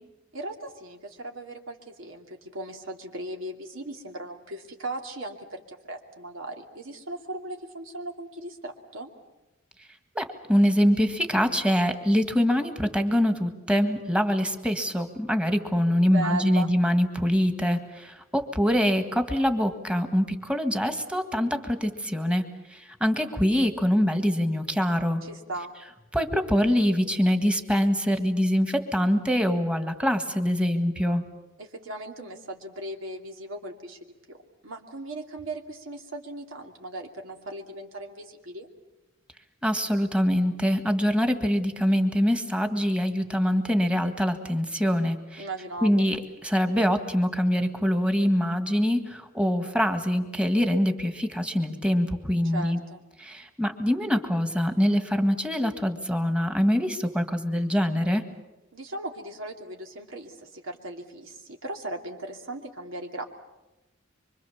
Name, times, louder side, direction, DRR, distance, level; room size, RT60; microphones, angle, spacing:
voice 1, 0.3-9.1 16.0-16.7 25.2-25.7 31.6-34.0 34.3-34.4 34.6-38.7 45.4-46.1 52.4-53.0 58.7-63.2, right 2 dB, 85° right, 3 dB, 2.7 m, -37 dB
voice 2, 10.1-25.2 26.1-31.2 39.6-45.4 45.8-52.8 53.2-58.2, equal, 5° right, 7 dB, 1.7 m, -24 dB
25.0 x 24.5 x 7.2 m, 1.0 s
head